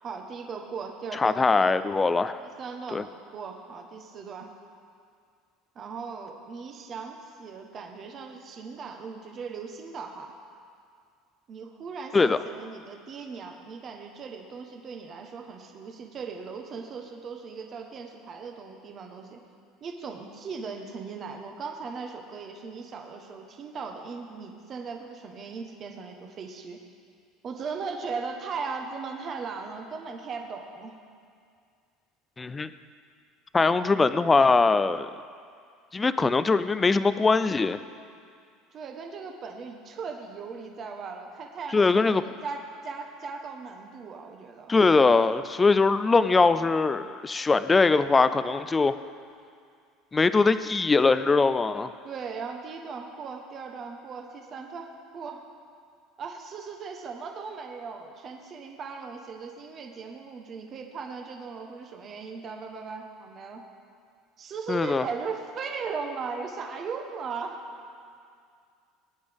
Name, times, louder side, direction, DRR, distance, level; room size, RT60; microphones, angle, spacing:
voice 1, 0.0-1.8 2.4-4.5 5.7-10.3 11.5-19.4 19.8-26.8 27.4-31.0 33.6-34.2 38.7-44.8 52.0-55.4 56.2-63.6 64.4-67.6, right 5 dB, 35° right, 2 dB, 1.0 m, -38 dB
voice 2, 1.1-2.4 2.9-3.0 12.1-12.4 32.4-32.7 33.5-35.1 35.9-37.8 41.7-42.2 44.7-48.9 50.1-51.9 64.7-65.1, left 4 dB, 15° left, 13 dB, 0.4 m, -22 dB
20.5 x 9.9 x 3.5 m, 2.2 s
cardioid pair, 145°, 0 cm